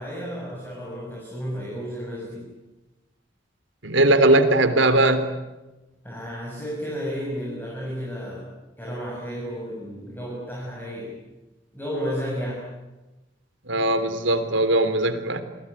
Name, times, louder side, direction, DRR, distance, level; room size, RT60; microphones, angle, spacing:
voice 1, 0.0-2.5 6.0-8.5 8.8-11.2 11.7-12.7, equal, 10° left, -3 dB, 6.9 m, -32 dB
voice 2, 3.8-5.3 13.7-15.4, right 2 dB, 90° right, 11 dB, 3.4 m, -19 dB
29.0 x 21.0 x 9.9 m, 1.1 s
head